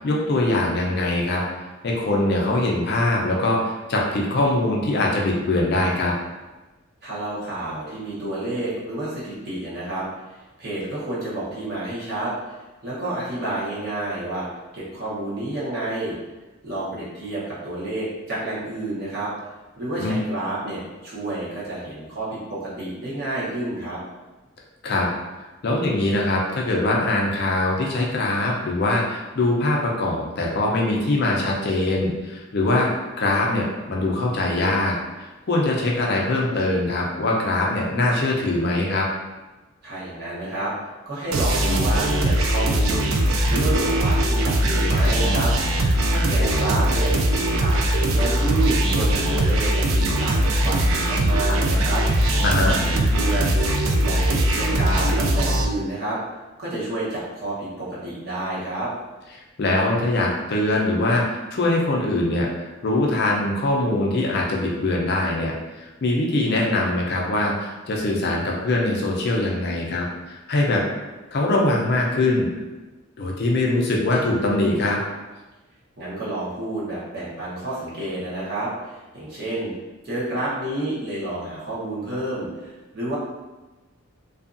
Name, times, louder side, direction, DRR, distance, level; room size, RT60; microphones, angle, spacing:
voice 1, 0.0-1.4 1.8-6.1 20.0-20.2 24.8-25.1 25.6-32.9 33.2-34.9 35.5-39.1 52.4-52.7 59.6-61.2 61.5-62.5 62.8-70.8 71.3-72.5 73.2-75.0, left 2 dB, 50° left, -2 dB, 0.4 m, -22 dB
voice 2, 7.0-12.3 12.8-14.5 14.7-16.1 16.6-19.3 19.8-24.0 39.8-40.7 41.1-45.5 46.1-52.0 52.5-53.6 54.0-56.2 56.6-58.9 76.0-79.7 80.0-83.2, right 2 dB, 45° right, -9 dB, 0.9 m, -29 dB
sound 1, 41.3-55.6, right 1 dB, 70° right, 0.3 m, -20 dB
2.6 x 2.3 x 2.5 m, 1.1 s
head